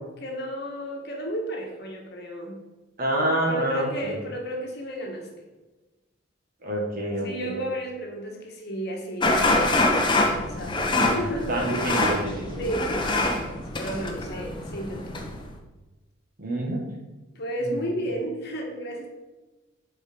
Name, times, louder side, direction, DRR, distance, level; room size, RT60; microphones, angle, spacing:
voice 1, 0.2-2.6 3.5-5.5 7.2-9.8 10.4-11.7 12.6-15.1 17.3-19.1, right 1 dB, 55° left, 0 dB, 1.5 m, -33 dB
voice 2, 3.0-4.2 6.6-7.6 11.0-11.1 11.5-12.6 16.4-16.9 17.6-17.8, right 1 dB, 45° right, -1 dB, 1.8 m, -27 dB
sound 1, 9.2-15.5, left 2 dB, 25° left, 0.8 m, -25 dB
7.3 x 4.7 x 5.2 m, 1.1 s
head